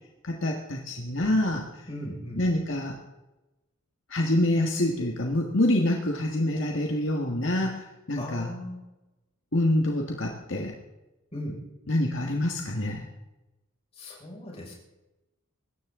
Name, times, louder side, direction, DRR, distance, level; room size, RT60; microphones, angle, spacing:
voice 1, 0.2-1.7 2.4-2.9 4.1-7.8 8.1-8.5 9.5-10.7 11.9-13.0, left 1 dB, 60° left, 1 dB, 1.7 m, -26 dB
voice 2, 1.9-2.4 8.2-8.8 11.3-11.6 13.9-14.7, left 1 dB, 30° left, -3 dB, 5.7 m, -38 dB
24.0 x 13.0 x 3.8 m, 1.0 s
head